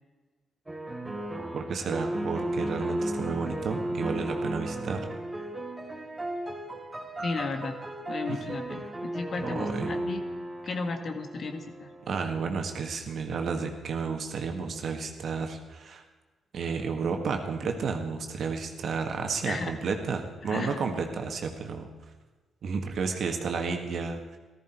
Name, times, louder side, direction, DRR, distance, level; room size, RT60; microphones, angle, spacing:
sound 1, 0.7-12.2, right 1 dB, 20° right, 2.9 m, -35 dB
voice 1, 1.5-5.0 8.3-8.4 9.4-9.9 12.1-16.0 16.5-21.9 22.6-24.4, right 5 dB, 65° right, 4 dB, 1.8 m, -32 dB
voice 2, 7.2-7.8 8.1-10.2 10.6-11.9 19.5-19.7 20.4-20.8, left 3 dB, 55° left, 6 dB, 1.7 m, -34 dB
14.5 x 13.5 x 4.6 m, 1.3 s
supercardioid pair, 50°, 0 cm